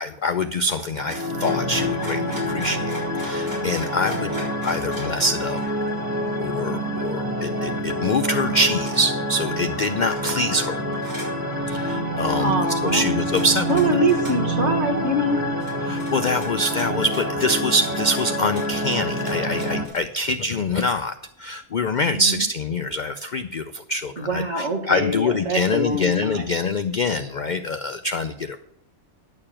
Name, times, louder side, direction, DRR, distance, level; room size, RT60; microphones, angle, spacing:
voice 1, 0.0-2.9 3.2-4.3 4.6-5.6 6.4-10.8 11.7-13.7 15.8-28.6, left 2 dB, 65° left, 8 dB, 0.4 m, -25 dB
sound 1, 0.9-19.9, equal, 15° right, 1.5 m, -27 dB
sound 2, 1.0-6.6 7.1-7.2 7.4-8.4 8.9-9.0 10.0-10.6 10.9-11.4 11.7-11.8 12.7-13.8 14.1-14.4 15.0-15.1 15.4-20.0, right 1 dB, 85° right, 4.7 m, -40 dB
voice 2, 4.1-4.5 12.3-13.0 13.7-15.4 22.1-22.4 24.2-26.5, right 1 dB, 55° right, 3 dB, 1.9 m, -24 dB
10.5 x 6.8 x 7.3 m, 0.72 s
omnidirectional pair, 1.5 m